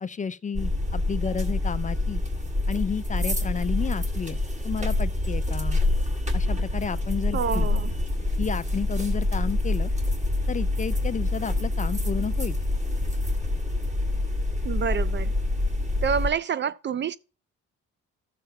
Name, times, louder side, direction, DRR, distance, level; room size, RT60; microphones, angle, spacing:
voice 1, 0.0-2.2 2.7-5.8 6.3-7.7 8.4-9.9 10.5-12.6, left 6 dB, 25° left, 0.5 m, -31 dB
sound 1, 0.5-16.3, left 2 dB, 25° right, 1.9 m, -26 dB
voice 2, 7.3-7.9 14.6-15.3 16.0-17.2, right 7 dB, 40° right, 0.4 m, -27 dB
13.0 x 6.7 x 2.7 m
cardioid pair, 90°, 30 cm